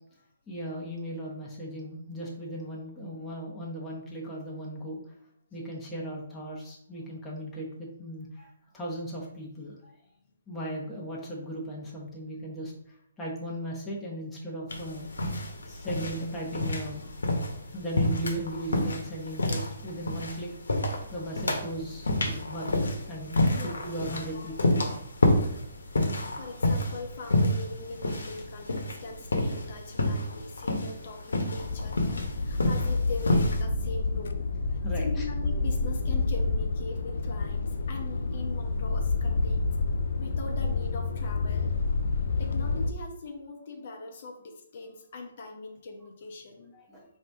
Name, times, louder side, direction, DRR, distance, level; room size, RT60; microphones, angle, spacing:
voice 1, 0.5-5.0 5.5-8.5 8.7-9.7 10.5-12.7 13.2-15.1 15.7-17.1 17.7-20.5 21.1-22.7 23.1-24.9 34.8-35.2 46.7-47.0, right 1 dB, 10° left, -5 dB, 0.9 m, -37 dB
sound 1, 14.7-33.6, left 1 dB, 85° left, 0.9 m, -29 dB
voice 2, 23.5-24.8 25.2-25.6 26.4-39.7 40.2-41.7 42.4-46.7, left 3 dB, 50° left, 2 dB, 0.7 m, -41 dB
sound 2, 31.6-42.9, left 3 dB, 70° left, 0.4 m, -29 dB
4.7 x 2.7 x 3.4 m, 0.71 s
hypercardioid pair, 155°, 0 cm